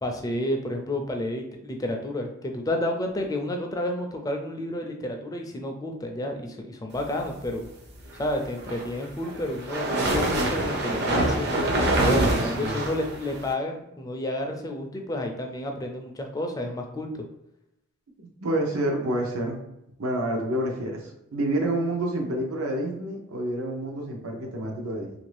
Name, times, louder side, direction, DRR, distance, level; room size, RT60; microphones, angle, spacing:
voice 1, 0.0-7.7 8.1-11.5 12.0-17.2, left 1 dB, 15° left, 3 dB, 0.4 m, -30 dB
sound 1, 8.4-13.5, right 1 dB, 50° right, 0.6 m, -25 dB
voice 2, 12.0-12.8 18.2-19.6 20.0-25.1, right 1 dB, 85° right, 1 dB, 0.8 m, -28 dB
3.0 x 2.6 x 3.2 m, 0.85 s
head